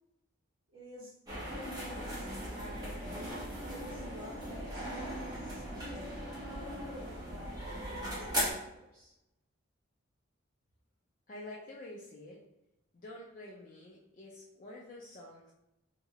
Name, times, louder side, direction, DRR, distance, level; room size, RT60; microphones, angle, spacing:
voice 1, 0.7-1.1 1.5-6.1 6.6-9.1, left 1 dB, 65° right, -12 dB, 1.1 m, -51 dB
sound 1, 1.3-8.5, equal, 20° right, 0.8 m, -38 dB
voice 2, 11.3-12.4 12.9-15.5, left 1 dB, 40° left, -4 dB, 0.4 m, -48 dB
3.6 x 2.0 x 2.8 m, 0.88 s
head